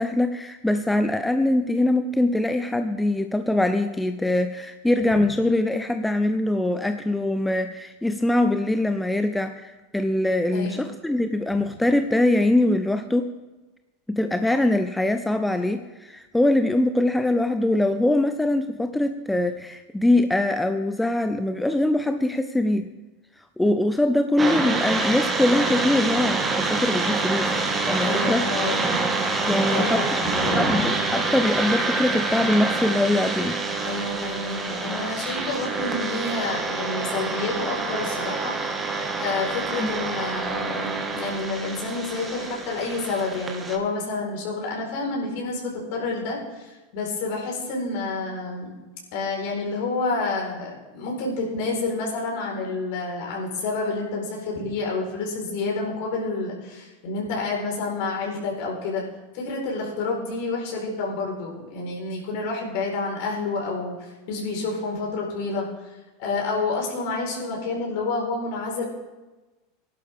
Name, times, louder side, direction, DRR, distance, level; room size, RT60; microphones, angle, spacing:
voice 1, 0.0-13.3 14.1-22.9 23.6-27.5 27.9-28.5 29.5-30.2 30.6-33.6 39.8-39.9, left 1 dB, 5° left, 8 dB, 0.6 m, -23 dB
voice 2, 10.5-10.8 11.5-11.6 28.0-29.0 29.6-30.9 33.8-38.6 39.2-48.7 49.1-59.0 59.3-65.9 66.2-68.9, left 3 dB, 55° left, -1 dB, 4.7 m, -29 dB
sound 1, 24.4-43.8, right 3 dB, 15° right, 1.8 m, -26 dB
17.0 x 11.5 x 3.6 m, 1.1 s
figure-of-eight pair, 80°, 0 cm